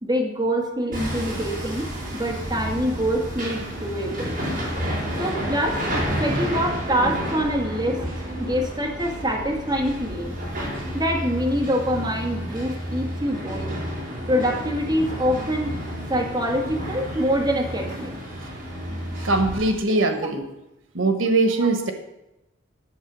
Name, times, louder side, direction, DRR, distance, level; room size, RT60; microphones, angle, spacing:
voice 1, 0.0-4.4 5.2-5.9 6.2-10.4 10.9-13.8 14.3-15.7 16.1-18.1 21.6-21.7, equal, 20° right, 0 dB, 1.7 m, -25 dB
Hammer, 0.9-19.5, equal, 45° right, 4.3 m, -30 dB
voice 2, 19.1-20.5 20.9-21.9, right 2 dB, 90° right, 7 dB, 1.3 m, -21 dB
11.0 x 7.0 x 6.1 m, 0.91 s
head